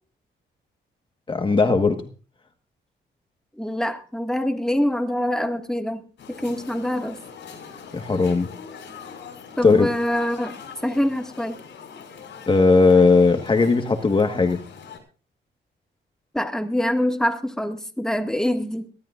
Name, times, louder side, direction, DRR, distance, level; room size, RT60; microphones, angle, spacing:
voice 1, 1.3-2.0 7.9-8.5 9.6-9.9 12.5-14.6, left 4 dB, 25° left, 5 dB, 1.5 m, -17 dB
voice 2, 3.6-6.0 6.3-7.2 9.6-11.6 16.3-18.9, left 1 dB, 5° left, 5 dB, 1.9 m, -25 dB
sound 1, 6.2-15.0, left 6 dB, 75° left, 6.1 m, -42 dB
23.0 x 16.5 x 2.5 m, 0.38 s
cardioid pair, 120°, 19 cm